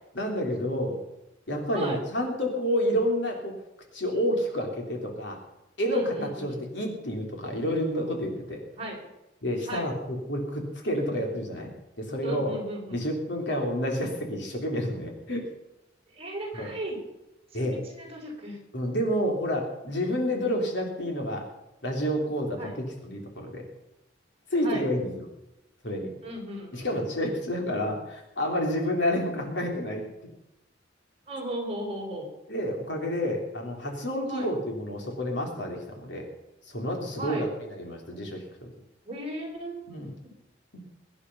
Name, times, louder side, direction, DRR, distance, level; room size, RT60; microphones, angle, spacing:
voice 1, 0.2-1.0 1.5-3.6 3.9-5.4 5.8-8.6 9.4-11.7 12.0-12.5 12.9-15.5 16.5-16.7 17.5-17.8 18.7-21.5 21.8-23.6 24.5-25.2 25.8-26.1 26.7-30.0 32.5-36.3 36.7-38.4 39.9-40.1 40.7-40.8, equal, 65° left, 1 dB, 3.7 m, -29 dB
voice 2, 5.9-6.6 8.8-9.0 9.7-9.9 12.2-13.0 16.1-17.0 17.5-18.6 22.6-22.8 24.6-24.9 26.2-27.1 31.3-32.3 34.3-34.5 37.2-37.5 39.0-39.9 40.2-40.3, right 1 dB, 30° right, -1 dB, 4.7 m, -36 dB
22.5 x 10.0 x 5.6 m, 0.92 s
head